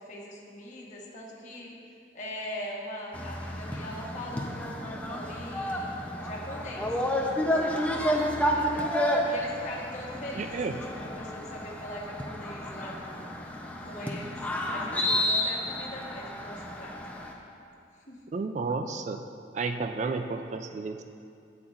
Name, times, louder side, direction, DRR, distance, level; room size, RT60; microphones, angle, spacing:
voice 1, 0.0-1.8 2.1-8.9 9.2-10.6 10.9-13.2 13.8-14.4 14.7-16.9 18.1-18.2, left 1 dB, 45° left, -4 dB, 1.4 m, -41 dB
sound 1, 3.1-17.3, equal, 10° left, 0.6 m, -31 dB
voice 2, 10.3-10.8 18.3-19.2 19.5-21.0, right 4 dB, 40° right, 7 dB, 0.3 m, -32 dB
12.5 x 8.7 x 2.5 m, 2.5 s
head